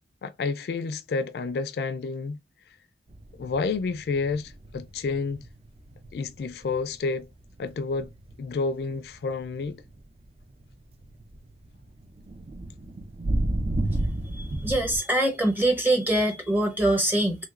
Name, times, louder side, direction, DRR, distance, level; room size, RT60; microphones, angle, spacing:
voice 1, 0.2-2.4 3.4-5.4 6.1-7.3 7.6-8.1 8.4-9.8, left 4 dB, 60° left, 0.3 m, -29 dB
sound 1, 3.1-8.5 8.9-15.0, right 1 dB, 35° right, 0.3 m, -32 dB
voice 2, 14.6-17.5, right 1 dB, 10° right, 0.7 m, -23 dB
3.0 x 2.8 x 2.4 m
head